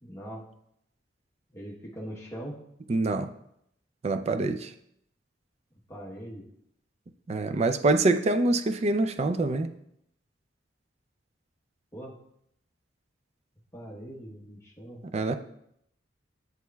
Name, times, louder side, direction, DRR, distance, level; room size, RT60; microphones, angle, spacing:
voice 1, 0.0-0.4 1.5-2.6 5.9-6.4 11.9-12.1 13.7-15.0, equal, 15° left, -3 dB, 1.0 m, -41 dB
voice 2, 2.9-3.3 4.0-4.7 7.3-9.7 15.1-15.4, right 2 dB, 35° right, 8 dB, 0.3 m, -25 dB
8.3 x 6.3 x 2.3 m, 0.75 s
head